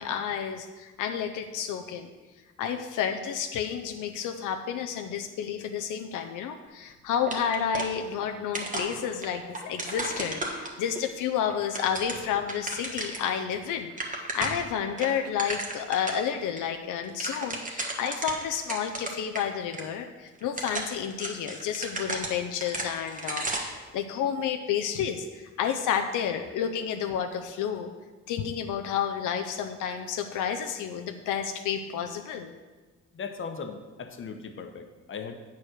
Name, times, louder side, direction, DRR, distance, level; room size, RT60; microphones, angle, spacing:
voice 1, 0.0-2.1 2.6-27.9 28.3-32.5, left 8 dB, 85° left, 5 dB, 0.6 m, -31 dB
sound 1, 7.3-8.3 8.5-11.0 11.5-13.3 13.6-13.7 13.9-14.7 15.0-16.2 16.6-16.7 17.0-19.4 19.7-19.8 20.4-23.8, right 2 dB, 25° right, 1.4 m, -34 dB
voice 2, 33.1-35.3, left 5 dB, 40° left, 6 dB, 1.0 m, -38 dB
8.3 x 4.7 x 6.4 m, 1.3 s
cardioid pair, 90°, 30 cm